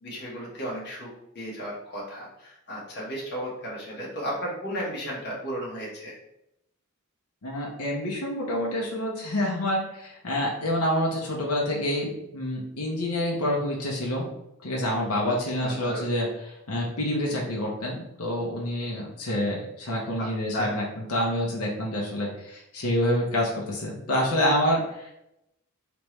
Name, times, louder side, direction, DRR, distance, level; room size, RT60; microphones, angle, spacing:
voice 1, 0.0-1.1 1.3-6.1 15.6-16.0 20.2-20.8, equal, 50° left, -5 dB, 1.4 m, -34 dB
voice 2, 7.4-14.3 14.6-25.1, left 1 dB, 75° left, -2 dB, 0.8 m, -27 dB
3.3 x 3.0 x 3.1 m, 0.83 s
head